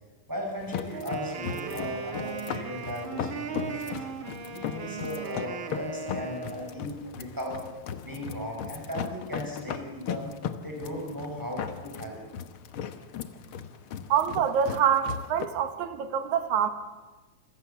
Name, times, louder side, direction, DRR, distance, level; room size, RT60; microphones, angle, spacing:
voice 1, 0.3-4.0 4.5-7.6 8.0-10.3 10.6-12.2, equal, 5° right, -1 dB, 6.6 m, -37 dB
sound 1, 0.6-15.5, left 8 dB, 60° left, 1.5 m, -37 dB
Wind instrument woodwind instrument, 0.9-6.8, right 5 dB, 50° right, 2.0 m, -37 dB
voice 2, 14.1-16.7, right 8 dB, 80° right, 9 dB, 2.8 m, -25 dB
27.0 x 16.5 x 7.1 m, 1.2 s
omnidirectional pair, 3.3 m